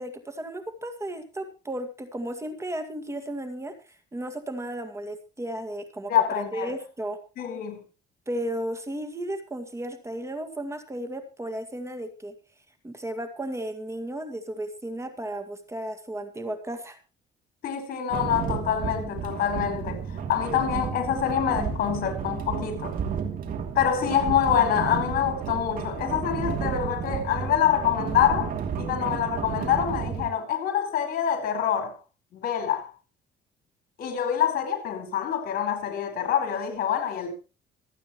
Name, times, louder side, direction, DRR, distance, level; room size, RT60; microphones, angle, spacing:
voice 1, 0.0-3.7 4.1-7.2 8.3-12.3 12.8-17.0, right 1 dB, 15° right, 2.1 m, -34 dB
voice 2, 6.1-6.7 7.4-7.8 17.6-20.0 20.3-22.9 23.7-32.0 32.3-32.9 34.0-37.3, left 9 dB, 60° left, 4.7 m, -26 dB
sound 1, 18.1-30.3, right 7 dB, 55° right, 2.8 m, -32 dB
25.5 x 9.0 x 3.1 m
cardioid pair, 110°, 17 cm